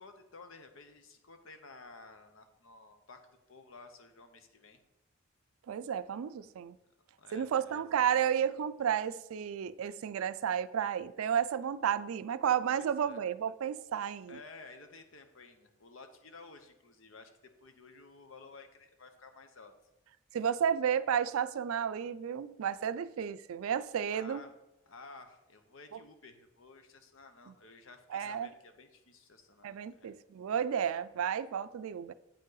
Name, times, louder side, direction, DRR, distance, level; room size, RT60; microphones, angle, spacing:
voice 1, 0.0-3.2 3.5-4.8 7.2-7.8 12.7-13.2 14.3-17.3 17.6-19.7 24.1-24.5 24.9-30.1, left 3 dB, 75° left, 0.8 m, -53 dB
voice 2, 5.7-6.8 7.3-14.4 20.3-24.4 27.5-27.6 28.1-28.5 29.6-32.1, right 8 dB, 85° right, 0.3 m, -32 dB
8.5 x 5.3 x 3.9 m
head